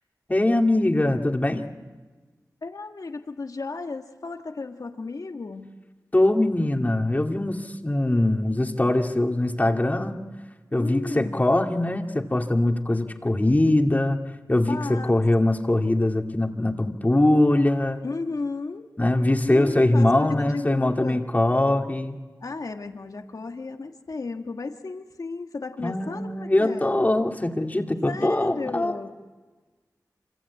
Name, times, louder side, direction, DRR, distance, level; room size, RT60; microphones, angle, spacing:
voice 1, 0.3-1.6 6.1-10.2 10.7-14.2 14.5-18.0 19.0-22.2 25.8-29.0, left 1 dB, 25° left, 3 dB, 2.4 m, -22 dB
voice 2, 2.6-5.8 10.7-11.5 14.7-15.1 15.4-15.6 18.0-18.9 19.5-21.2 22.4-26.9 28.1-29.1, left 3 dB, 65° left, 5 dB, 1.7 m, -34 dB
26.5 x 26.0 x 8.5 m, 1.3 s
wide cardioid pair, 65°, 6 cm